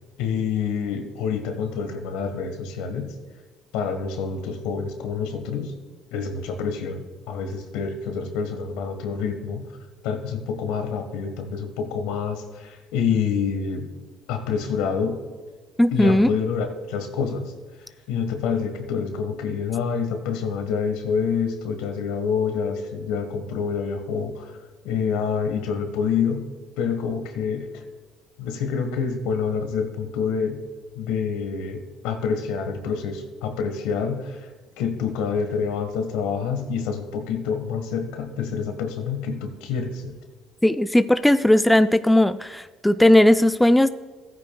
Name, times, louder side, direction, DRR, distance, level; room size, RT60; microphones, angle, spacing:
voice 1, 0.2-3.1 3.7-5.7 6.1-9.7 10.0-13.9 14.3-15.2 15.9-17.5 17.8-24.6 24.8-26.5 26.8-27.8 28.4-30.6 30.9-34.5 34.8-40.1, left 6 dB, 75° left, 7 dB, 1.3 m, -27 dB
voice 2, 15.8-16.3 40.6-43.9, left 1 dB, 5° left, 12 dB, 0.4 m, -17 dB
15.0 x 9.3 x 2.3 m, 1.4 s
hypercardioid pair, 60°, 0 cm